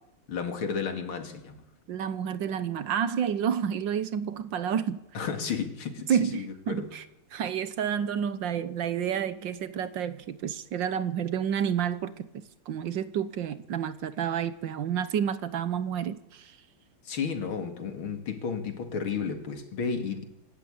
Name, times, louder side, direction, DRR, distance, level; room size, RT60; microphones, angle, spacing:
voice 1, 0.3-1.7 5.1-6.9 17.0-20.2, left 6 dB, 80° left, 3.1 m, -33 dB
voice 2, 1.9-5.0 6.1-7.0 7.3-12.3 12.7-16.6, right 8 dB, 65° right, 1.6 m, -29 dB
25.5 x 13.5 x 8.7 m
omnidirectional pair, 2.3 m